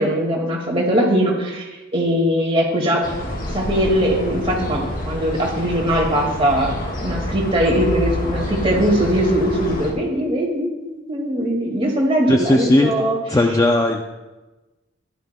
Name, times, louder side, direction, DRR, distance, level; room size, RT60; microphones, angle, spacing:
voice 1, 0.0-3.0 3.5-13.2, equal, 25° right, -1 dB, 2.0 m, -20 dB
sound 1, 3.0-9.9, left 1 dB, 45° left, 1.4 m, -27 dB
voice 2, 12.3-12.9 13.3-14.0, left 1 dB, 15° left, 3 dB, 0.4 m, -17 dB
14.5 x 11.0 x 2.2 m, 1.1 s
head